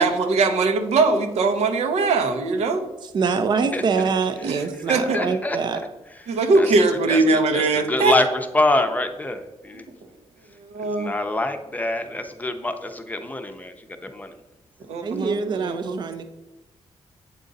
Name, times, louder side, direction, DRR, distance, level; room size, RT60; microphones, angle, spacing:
voice 1, 0.0-2.9 3.4-3.5 4.4-5.2 6.3-8.2 10.6-11.1 14.9-16.0, right 3 dB, 90° right, 6 dB, 0.9 m, -21 dB
voice 2, 3.1-5.9 15.0-16.2, right 5 dB, 45° right, 9 dB, 0.5 m, -24 dB
voice 3, 4.9-5.6 6.5-6.7 7.1-7.2 7.5-7.6 7.9-8.3 8.5-9.8 11.0-13.7 14.1-14.3, left 2 dB, 15° left, 6 dB, 0.6 m, -25 dB
8.2 x 3.8 x 4.0 m, 1.0 s
wide cardioid pair, 135°, 11 cm